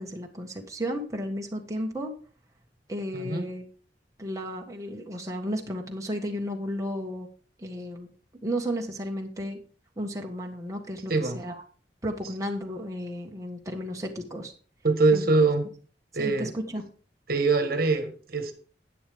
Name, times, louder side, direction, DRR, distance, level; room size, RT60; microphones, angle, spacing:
voice 1, 0.0-2.1 2.9-3.7 4.2-7.3 7.6-8.1 8.4-9.6 10.0-11.6 12.0-14.5 15.1-15.2 16.2-16.8, equal, 20° right, 1.5 m, -33 dB
voice 2, 3.1-3.4 11.1-11.4 14.8-15.6 16.1-16.5 17.3-18.5, right 3 dB, 60° right, 1.6 m, -23 dB
11.0 x 9.2 x 3.6 m
head